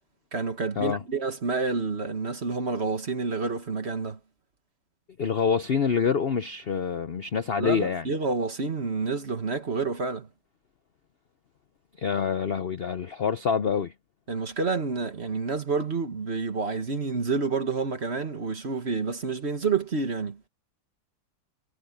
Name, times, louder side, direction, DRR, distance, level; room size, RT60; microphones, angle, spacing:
voice 1, 0.3-4.2 7.6-10.3 14.3-20.4, right 4 dB, 35° right, 1.7 m, -29 dB
voice 2, 5.2-8.0 12.0-13.9, left 6 dB, 65° left, 0.6 m, -26 dB
omnidirectional pair, 2.1 m